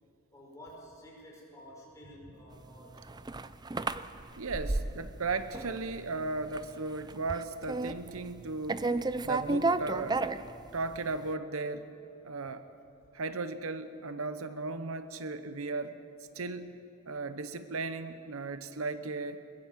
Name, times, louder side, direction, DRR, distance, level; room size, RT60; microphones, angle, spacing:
voice 1, 0.3-3.0, equal, 15° left, -3 dB, 5.8 m, -50 dB
sound 1, 2.8-5.3 5.5-6.1 6.4-6.7 7.0-8.4 8.7-11.0, right 3 dB, 20° right, 0.5 m, -32 dB
voice 2, 4.4-8.9 9.2-10.2 10.7-11.9 12.2-12.6 13.1-16.0 16.3-16.8 17.1-19.4, right 3 dB, 75° right, 11 dB, 0.9 m, -36 dB
22.0 x 20.5 x 7.4 m, 2.6 s
head